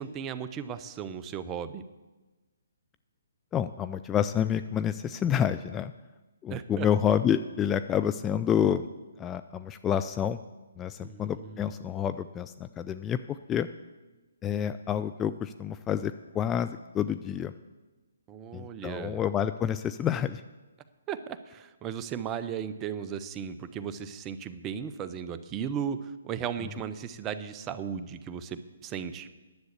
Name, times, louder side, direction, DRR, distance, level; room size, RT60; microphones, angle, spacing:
voice 1, 0.0-1.8 6.5-6.9 11.0-11.7 18.3-19.2 21.1-29.3, right 8 dB, 20° right, 12 dB, 0.6 m, -36 dB
voice 2, 3.5-5.9 6.4-8.9 9.2-10.4 10.8-13.7 14.4-17.5 18.5-20.4, left 9 dB, 15° left, 11 dB, 0.3 m, -28 dB
10.5 x 7.8 x 8.2 m, 1.2 s
figure-of-eight pair, 140°, 0 cm